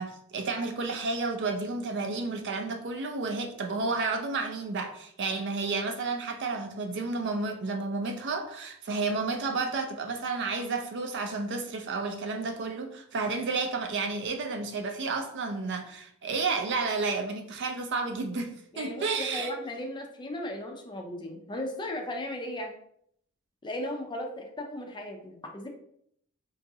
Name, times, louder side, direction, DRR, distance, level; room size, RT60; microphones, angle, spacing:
voice 1, 0.0-19.5, right 3 dB, 55° right, 5 dB, 0.5 m, -31 dB
voice 2, 18.7-22.7 23.6-25.7, left 1 dB, 20° left, 3 dB, 0.4 m, -36 dB
3.8 x 2.3 x 2.7 m, 0.69 s
head